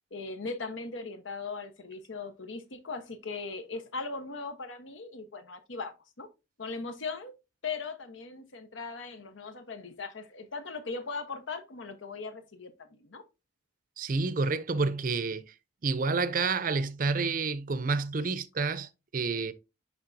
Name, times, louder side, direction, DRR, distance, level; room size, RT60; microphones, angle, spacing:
voice 1, 0.1-6.3 6.6-7.3 7.6-13.2, left 4 dB, 85° left, 1.0 m, -39 dB
voice 2, 14.0-15.5 15.8-19.5, right 4 dB, 45° right, 0.5 m, -29 dB
10.5 x 3.6 x 2.6 m
head